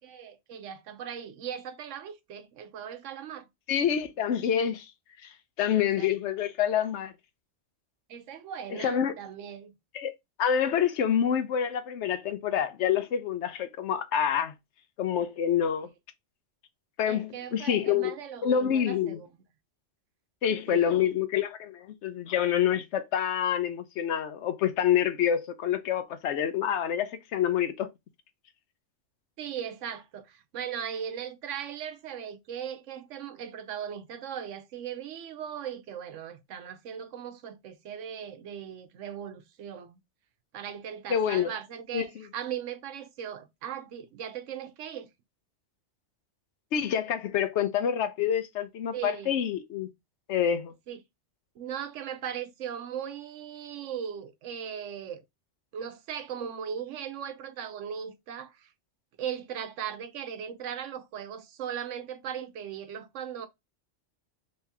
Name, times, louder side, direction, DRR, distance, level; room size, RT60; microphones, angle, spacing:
voice 1, 0.0-3.5 5.6-5.7 6.0-6.1 8.1-9.7 17.0-19.3 20.7-21.0 29.4-40.0 40.5-45.1 48.9-49.4 50.9-51.0 51.6-55.2 55.7-58.7 59.2-63.5, right 8 dB, 80° right, 1.0 m, -38 dB
voice 2, 3.7-4.9 5.2-5.3 5.6-7.1 8.7-9.1 9.9-10.1 10.4-14.5 15.0-15.9 17.0-18.1 18.4-19.2 20.4-27.9 41.1-41.5 41.9-42.2 46.7-49.9 50.3-50.7, left 9 dB, 70° left, 0.9 m, -27 dB
3.2 x 2.8 x 3.4 m
omnidirectional pair, 1.3 m